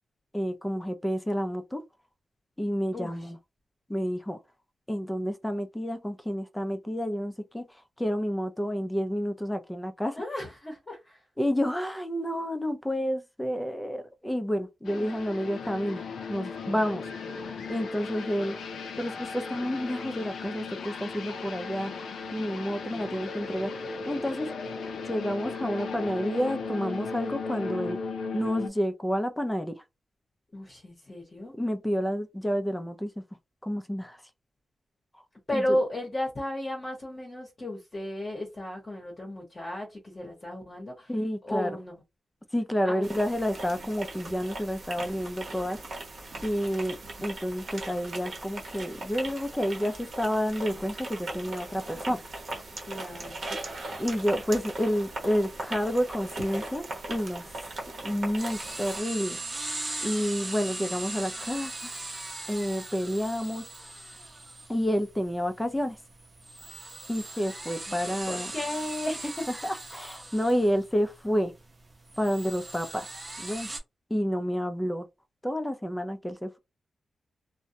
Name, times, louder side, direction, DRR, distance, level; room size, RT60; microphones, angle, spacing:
voice 1, 0.3-1.8 2.6-3.4 3.9-4.4 4.9-10.2 11.4-16.0 16.3-17.0 17.7-18.6 19.0-21.9 22.3-23.7 24.1-24.5 25.1-28.0 28.3-29.8 31.5-33.2 33.6-34.2 35.5-35.8 41.1-41.8 42.5-45.8 46.4-52.2 54.0-57.5 58.0-59.4 60.0-62.0 62.5-63.6 64.7-66.0 67.1-68.5 69.6-71.5 72.2-73.1 73.4-73.7 74.1-75.1 75.4-76.6, equal, 10° left, 0.5 m, -29 dB
voice 2, 2.9-3.3 10.2-11.2 14.9-15.1 30.5-31.5 35.5-41.1 41.4-42.0 42.8-43.1 52.9-53.4 68.3-69.5, left 1 dB, 35° left, 0.9 m, -34 dB
sound 1, 14.8-28.7, left 4 dB, 80° left, 0.4 m, -36 dB
sound 2, 43.0-59.0, right 2 dB, 60° right, 0.8 m, -39 dB
sound 3, 58.4-73.8, right 2 dB, 25° right, 0.8 m, -40 dB
2.2 x 2.0 x 2.7 m
cardioid pair, 75°, 0 cm